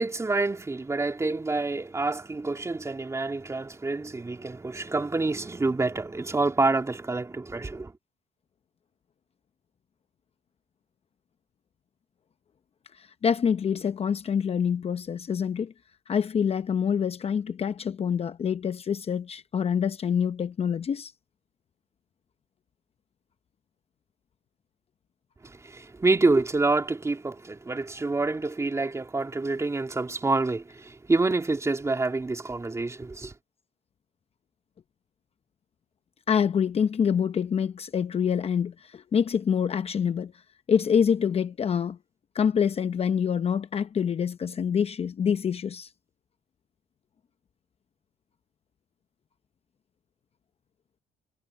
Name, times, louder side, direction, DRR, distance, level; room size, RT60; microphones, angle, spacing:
voice 1, 0.0-7.9 25.4-33.3, right 3 dB, 15° right, 3.4 m, -27 dB
voice 2, 12.9-15.7 16.1-21.1 36.3-40.3 40.7-42.0 42.3-45.9, left 7 dB, 35° left, 0.8 m, -26 dB
cardioid pair, 110°, 17 cm